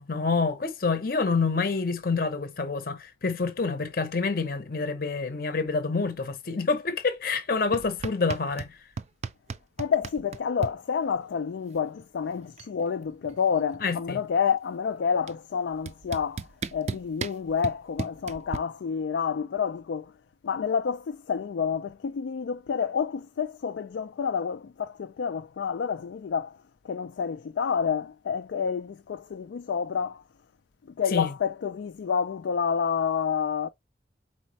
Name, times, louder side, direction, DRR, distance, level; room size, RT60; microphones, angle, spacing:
voice 1, 0.0-8.7 13.8-14.2 31.1-31.3, left 4 dB, 55° left, 0.7 m, -27 dB
sound 1, 7.7-8.7 9.0-10.7 12.0-12.1 12.3-12.8 13.0-14.4 15.3-15.4 15.9-18.6, right 5 dB, 40° right, 0.3 m, -35 dB
voice 2, 9.8-20.1 20.4-26.6 26.8-30.2 31.0-33.7, left 6 dB, 90° left, 0.4 m, -29 dB
4.3 x 4.1 x 2.9 m
head